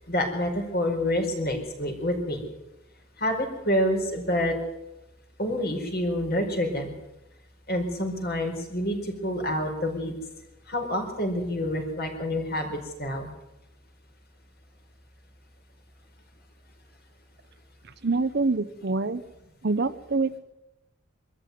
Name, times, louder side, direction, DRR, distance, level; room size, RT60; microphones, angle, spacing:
voice 1, 0.1-2.5 3.2-4.6 5.4-6.9 7.7-10.1 10.7-13.3, left 1 dB, 50° left, 3 dB, 5.0 m, -27 dB
voice 2, 18.0-19.2 19.6-20.4, right 3 dB, 55° right, 11 dB, 0.9 m, -25 dB
24.0 x 13.5 x 9.5 m, 0.95 s
head